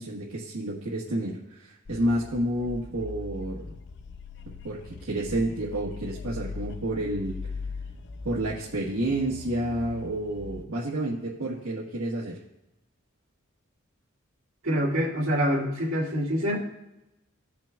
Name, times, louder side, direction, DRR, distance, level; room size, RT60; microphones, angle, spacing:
voice 1, 0.0-3.8 4.6-7.4 8.2-12.4, right 1 dB, 80° right, -7 dB, 1.4 m, -30 dB
sound 1, 1.9-10.7, left 4 dB, 55° left, 0.5 m, -40 dB
voice 2, 14.6-16.5, equal, 65° right, -4 dB, 2.4 m, -25 dB
17.0 x 6.0 x 2.3 m, 0.92 s
head